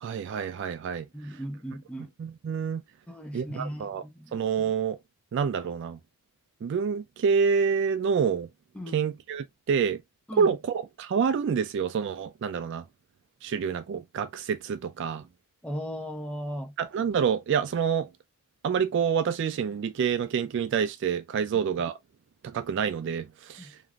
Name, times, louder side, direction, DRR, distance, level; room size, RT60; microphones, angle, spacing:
voice 1, 0.0-1.1 2.2-2.8 3.3-4.0 4.3-5.0 5.3-6.0 6.6-8.5 8.9-10.0 10.4-12.8 13.4-15.2 16.8-18.1 18.6-22.0 22.4-23.7, right 6 dB, 55° right, 0.3 m, -27 dB
voice 2, 1.1-2.1 3.1-4.4 8.8-9.0 10.3-10.5 15.6-16.7 23.6-23.7, equal, 5° left, 0.6 m, -37 dB
3.0 x 2.4 x 2.3 m
head